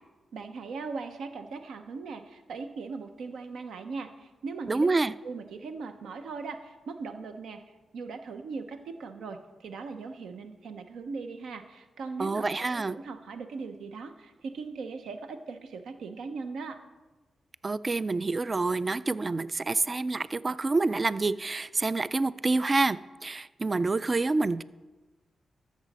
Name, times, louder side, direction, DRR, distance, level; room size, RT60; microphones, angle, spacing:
voice 1, 0.3-4.9 5.2-7.6 7.9-16.8, right 4 dB, 85° right, 7 dB, 0.7 m, -39 dB
voice 2, 4.7-5.1 12.2-13.0 17.6-24.6, right 3 dB, 40° right, 17 dB, 0.3 m, -27 dB
13.0 x 6.2 x 4.1 m, 1.2 s
cardioid pair, 50°, 0 cm